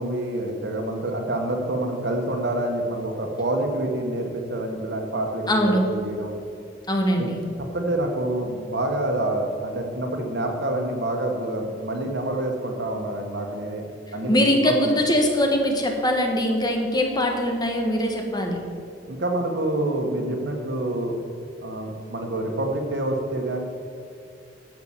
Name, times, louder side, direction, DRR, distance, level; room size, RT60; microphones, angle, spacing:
voice 1, 0.0-6.3 7.2-7.3 7.7-13.8 14.1-14.3 14.6-14.7 19.1-21.2 21.6-23.6, right 1 dB, 60° right, 3 dB, 1.6 m, -27 dB
voice 2, 5.5-5.9 6.9-7.4 14.3-18.6, equal, 20° left, 2 dB, 1.4 m, -22 dB
11.0 x 6.9 x 7.4 m, 2.4 s
head